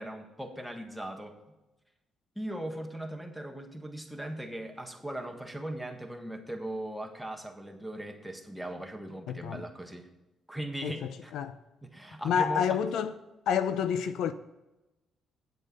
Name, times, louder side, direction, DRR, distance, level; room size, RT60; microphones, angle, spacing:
voice 1, 0.0-1.4 2.3-10.1 10.5-11.3 11.8-12.8, right 1 dB, ahead, 1.6 m, -39 dB
voice 2, 9.3-9.6 10.8-11.0 11.3-11.6 12.2-13.1 13.5-14.3, left 8 dB, 80° left, 0.5 m, -28 dB
9.4 x 7.7 x 5.4 m
cardioid pair, 90°, 0 cm